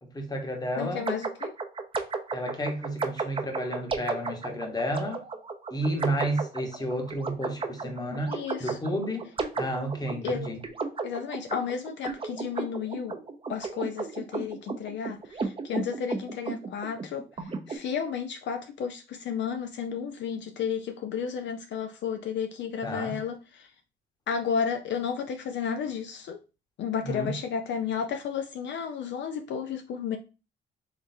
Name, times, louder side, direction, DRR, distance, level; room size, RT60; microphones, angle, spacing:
voice 1, 0.0-1.1 2.3-5.3 5.7-9.3 9.6-10.6 22.8-23.2 27.0-27.3, equal, 20° left, 1.1 m, -31 dB
voice 2, 0.8-1.5 8.2-8.8 10.2-10.5 11.0-13.2 13.5-23.7 24.3-26.4 26.8-30.2, left 7 dB, 65° left, 0.5 m, -32 dB
sound 1, 1.1-17.8, right 4 dB, 25° right, 0.6 m, -34 dB
3.8 x 3.4 x 2.7 m
cardioid pair, 90°, 20 cm